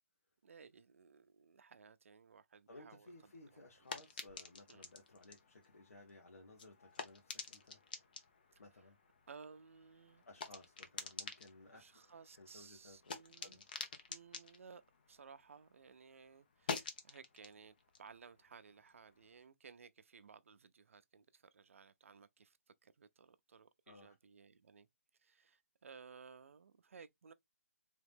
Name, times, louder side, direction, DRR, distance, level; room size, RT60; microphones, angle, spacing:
voice 1, 0.4-3.1 3.5-3.6 4.7-4.8 8.5-8.6 9.3-10.2 11.7-13.6 14.1-14.8 15.1-22.6 22.8-24.9 25.2-27.3, right 5 dB, 60° right, 0.5 m, -58 dB
voice 2, 2.7-7.8 8.6-9.0 10.3-11.8 12.4-13.6 23.9-24.1, left 2 dB, 80° left, 1.4 m, -59 dB
sound 1, 3.1-15.8 16.1-19.4, left 5 dB, 35° left, 0.7 m, -50 dB
3.7 x 2.9 x 3.5 m
hypercardioid pair, 175°, 8 cm